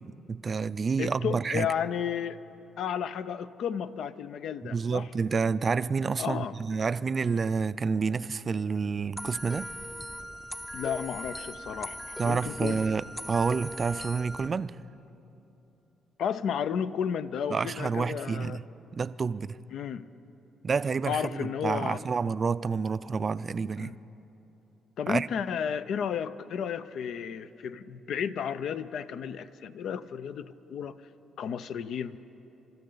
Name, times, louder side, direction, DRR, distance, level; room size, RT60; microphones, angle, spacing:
voice 1, 0.0-1.7 4.6-9.7 12.2-14.8 17.5-18.6 18.9-19.6 20.6-24.0 25.1-25.3, right 5 dB, 40° right, 0.3 m, -29 dB
voice 2, 1.0-2.4 2.8-5.1 6.2-6.5 10.7-12.8 16.2-18.6 19.7-20.1 21.1-22.0 23.8-23.9 25.0-31.0 31.4-32.2, left 8 dB, 70° left, 0.5 m, -33 dB
sound 1, 9.2-14.5, equal, 10° left, 0.6 m, -39 dB
27.5 x 13.5 x 3.9 m
cardioid pair, 90°, 0 cm